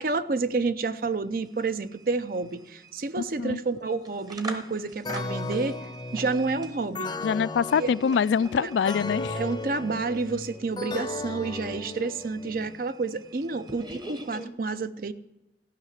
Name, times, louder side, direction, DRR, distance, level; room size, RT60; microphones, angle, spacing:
voice 1, 0.0-5.8 6.1-7.1 7.8-7.9 8.6-8.7 9.3-15.1, right 3 dB, 55° right, 13 dB, 0.6 m, -29 dB
sound 1, 0.6-0.7 1.0-14.5, right 2 dB, 25° right, 1.0 m, -46 dB
voice 2, 3.2-3.6 7.2-9.4, left 6 dB, 85° left, 18 dB, 0.3 m, -25 dB
sound 2, 5.0-12.7, left 2 dB, 25° left, 0.6 m, -36 dB
15.0 x 5.8 x 9.5 m, 0.98 s
head